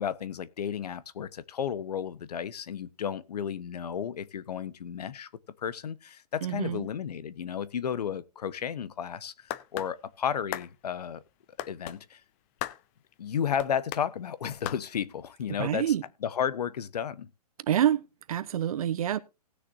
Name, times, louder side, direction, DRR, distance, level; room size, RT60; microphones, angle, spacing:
voice 1, 0.0-5.3 5.6-11.2 11.7-12.2 13.2-15.9 16.2-17.3, left 8 dB, 75° left, 1.2 m, -33 dB
voice 2, 6.4-6.9 15.6-16.0 17.7-19.2, right 10 dB, 60° right, 1.0 m, -27 dB
sound 1, 9.5-9.9 10.5-10.7 11.6-12.0 12.6-12.8 13.6-14.0 14.6-14.8, left 15 dB, 20° left, 0.4 m, -35 dB
18.5 x 6.7 x 2.7 m
hypercardioid pair, 160°, 20 cm